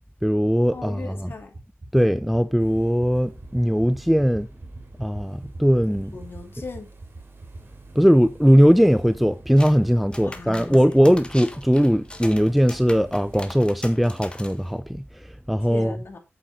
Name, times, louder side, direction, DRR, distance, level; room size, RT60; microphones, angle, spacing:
voice 1, 0.2-1.3 1.9-4.5 5.0-6.1 7.9-16.0, equal, ahead, 0.4 m, -19 dB
voice 2, 0.7-1.5 6.1-6.9 10.2-11.0 15.7-16.2, left 4 dB, 55° left, 2.7 m, -38 dB
sound 1, 1.5-7.6, right 2 dB, 40° right, 5.4 m, -40 dB
sound 2, 2.6-13.5, right 3 dB, 60° right, 3.4 m, -49 dB
sound 3, 9.6-9.8 10.1-14.7, left 2 dB, 25° left, 1.6 m, -40 dB
8.6 x 7.8 x 4.0 m
wide cardioid pair, 95°, 4 cm